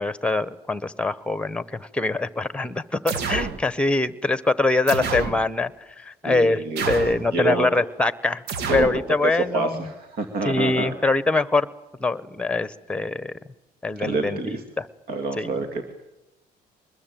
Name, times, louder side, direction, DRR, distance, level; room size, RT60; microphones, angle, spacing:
voice 1, 0.0-5.7 6.0-9.9 10.4-11.7 12.0-13.3 13.8-14.9 15.4-15.6, left 3 dB, 5° left, 16 dB, 1.0 m, -24 dB
sound 1, 3.1-3.6 4.9-5.4 6.8-7.3 8.5-9.0, right 5 dB, 85° right, 1.8 m, -28 dB
voice 2, 6.2-7.0 7.3-7.7 8.7-8.9 9.2-10.9 14.0-14.6 15.1-15.9, right 3 dB, 65° right, 7 dB, 2.4 m, -27 dB
24.5 x 20.5 x 9.2 m, 0.95 s
cardioid pair, 110°, 17 cm